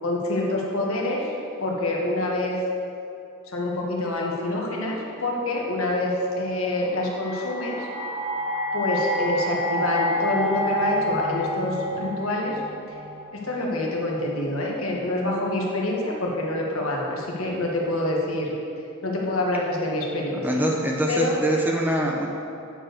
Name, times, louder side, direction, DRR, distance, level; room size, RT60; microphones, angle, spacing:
voice 1, 0.0-1.2 1.6-2.6 3.5-7.9 8.7-12.6 13.3-18.5 19.0-20.4 21.1-21.4, left 1 dB, 90° left, -2 dB, 1.5 m, -26 dB
sound 1, 6.6-13.7, equal, 25° right, 1.1 m, -29 dB
voice 2, 20.3-22.3, right 1 dB, 10° right, -1 dB, 0.8 m, -24 dB
8.8 x 4.7 x 6.5 m, 2.7 s
head